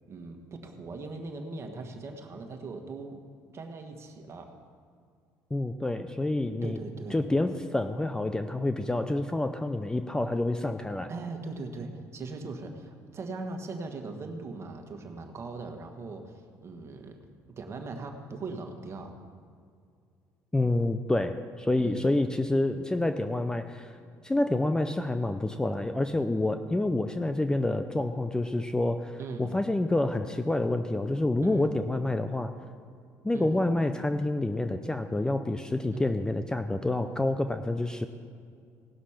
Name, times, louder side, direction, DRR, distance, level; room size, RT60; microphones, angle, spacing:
voice 1, 0.1-3.2 3.5-4.6 6.6-7.2 11.1-17.2 17.6-19.1 21.8-22.1 29.2-29.6 31.4-31.7 33.3-33.6 35.9-36.2, right 3 dB, 40° right, 4 dB, 1.5 m, -40 dB
voice 2, 5.5-6.8 7.1-11.1 20.5-23.9 24.2-32.5 33.2-38.1, left 2 dB, 10° left, 9 dB, 0.5 m, -28 dB
18.0 x 6.2 x 5.8 m, 2.2 s
cardioid pair, 95°, 7 cm